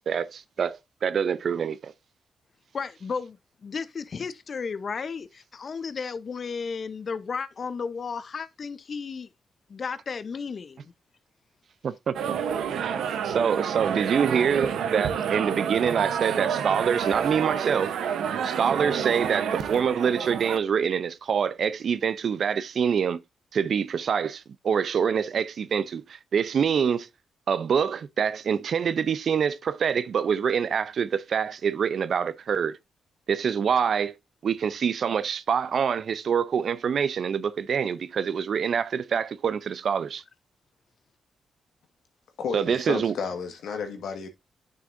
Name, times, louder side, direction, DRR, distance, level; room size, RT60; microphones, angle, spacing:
voice 1, 0.1-1.9 11.8-12.3 12.8-17.9 18.4-23.2 23.5-27.1 27.5-32.8 33.3-34.1 34.4-40.2 42.5-43.1, right 7 dB, 65° right, 0.6 m, -26 dB
voice 2, 2.7-9.3 9.7-10.9, left 5 dB, 55° left, 0.8 m, -34 dB
sound 1, 12.1-20.6, right 8 dB, 85° right, 0.9 m, -29 dB
voice 3, 42.4-44.3, left 5 dB, 80° left, 1.6 m, -32 dB
9.3 x 6.2 x 2.6 m
supercardioid pair, 55°, 0 cm